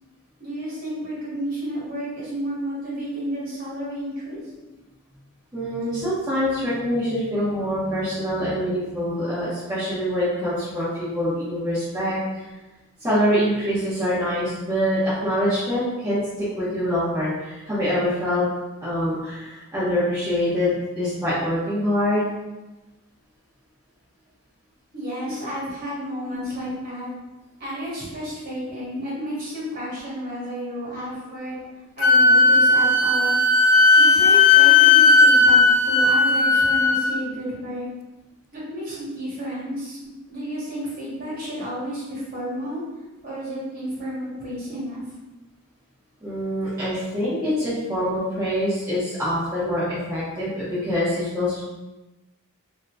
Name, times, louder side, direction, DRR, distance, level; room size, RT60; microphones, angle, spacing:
voice 1, 0.4-4.4 24.9-27.1 27.6-31.6 32.0-33.4 34.0-37.9 38.5-40.0 40.3-42.8 43.2-45.1, equal, 40° right, -8 dB, 1.4 m, -31 dB
voice 2, 5.5-12.4 13.0-18.4 18.8-22.3 26.3-26.7 30.9-31.0 36.7-36.8 46.2-51.6, equal, 15° right, -13 dB, 0.8 m, -25 dB
Wind instrument woodwind instrument, 32.0-37.2, left 3 dB, 60° left, 0.3 m, -15 dB
2.8 x 2.6 x 3.3 m, 1.1 s
head